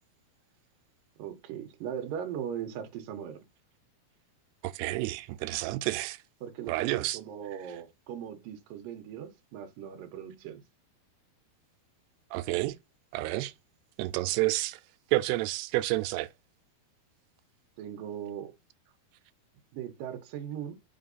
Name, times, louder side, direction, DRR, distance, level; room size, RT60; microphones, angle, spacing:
voice 1, 1.2-3.5 6.4-10.6 17.8-18.5 19.7-20.8, right 9 dB, 70° right, 2.4 m, -39 dB
voice 2, 4.6-6.2 6.7-7.2 12.3-12.8 13.1-13.5 14.0-14.8 15.1-16.3, right 18 dB, 90° right, 2.6 m, -29 dB
6.0 x 3.9 x 4.0 m
omnidirectional pair, 4.6 m